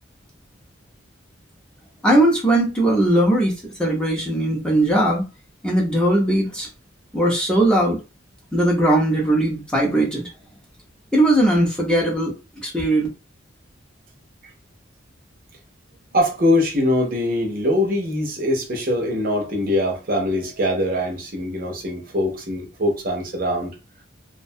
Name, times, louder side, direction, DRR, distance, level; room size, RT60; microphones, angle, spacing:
voice 1, 2.0-5.2 5.6-6.7 7.1-8.0 8.5-10.3 11.1-12.3 12.6-13.1, right 1 dB, 5° left, 0.6 m, -19 dB
voice 2, 16.1-23.7, left 1 dB, 45° right, 0.6 m, -22 dB
2.4 x 2.2 x 2.6 m
head